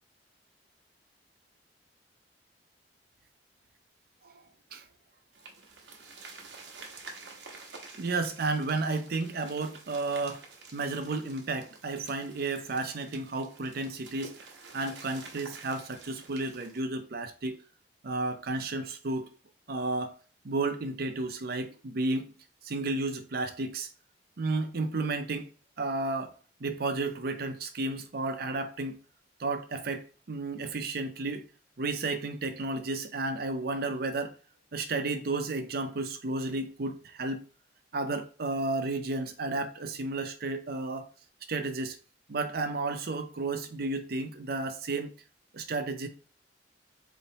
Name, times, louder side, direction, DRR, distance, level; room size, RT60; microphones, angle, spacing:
sound 1, 5.3-16.8, right 3 dB, 85° right, 1.0 m, -49 dB
voice 1, 8.0-10.5 10.7-14.4 14.7-17.6 18.0-19.3 19.7-20.1 20.4-22.3 22.6-23.9 24.4-25.5 25.8-26.3 26.6-29.0 29.4-31.5 31.8-34.3 34.7-37.4 37.9-41.1 41.5-42.0 42.3-45.1 45.5-46.1, right 3 dB, 60° right, 0.6 m, -32 dB
4.2 x 3.1 x 2.8 m
head